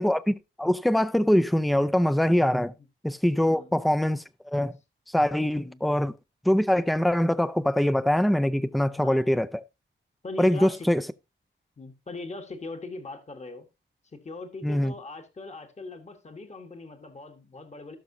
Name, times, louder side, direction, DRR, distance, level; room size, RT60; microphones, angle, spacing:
voice 1, 0.0-2.7 3.0-4.7 5.1-6.2 6.4-9.5 10.4-11.0 14.6-14.9, left 1 dB, ahead, 0.4 m, -23 dB
voice 2, 9.0-9.3 10.2-10.9 11.8-13.7 14.0-18.0, left 3 dB, 35° left, 1.3 m, -40 dB
16.5 x 6.3 x 2.7 m
wide cardioid pair, 120°, 20 cm